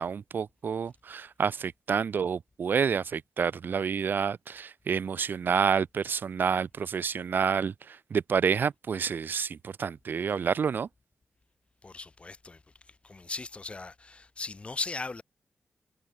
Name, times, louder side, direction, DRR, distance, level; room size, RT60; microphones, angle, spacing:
voice 1, 0.0-10.9, right 6 dB, 70° right, 0.8 m, -29 dB
voice 2, 11.8-12.6 12.9-15.2, left 3 dB, 35° left, 2.9 m, -38 dB
wide cardioid pair, 90°, 4 cm